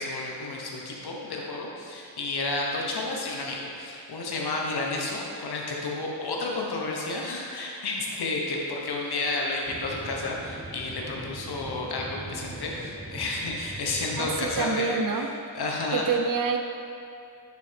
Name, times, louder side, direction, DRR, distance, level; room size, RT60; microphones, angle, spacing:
voice 1, 0.0-15.0 15.5-16.0, left 2 dB, 70° left, -2 dB, 1.0 m, -31 dB
sound 1, 9.7-14.6, right 2 dB, 10° right, 0.5 m, -41 dB
voice 2, 14.2-15.3 15.9-16.6, right 5 dB, 55° right, 5 dB, 0.6 m, -27 dB
8.3 x 4.1 x 3.3 m, 2.6 s
cardioid pair, 85°, 40 cm